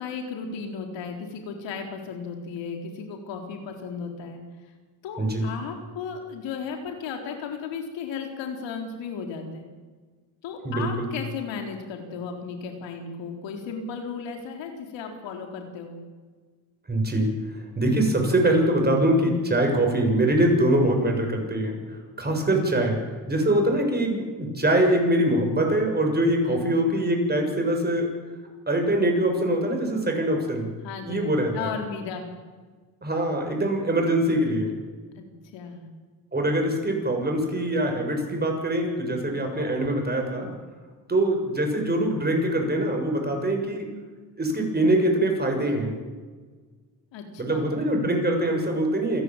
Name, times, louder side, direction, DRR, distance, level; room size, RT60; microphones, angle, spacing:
voice 1, 0.0-4.7 5.0-9.7 10.4-16.0 26.5-26.6 30.8-31.1 31.5-32.2 35.2-35.8 47.1-47.7, left 5 dB, 75° left, 3 dB, 4.1 m, -35 dB
voice 2, 10.7-11.1 16.9-17.3 17.5-23.0 23.3-28.1 28.7-30.7 31.0-31.7 33.0-34.7 36.3-40.5 41.1-43.9 44.4-45.9 47.4-49.2, right 1 dB, 20° right, 2 dB, 6.9 m, -23 dB
28.0 x 11.0 x 9.2 m, 1.4 s
supercardioid pair, 85°, 45 cm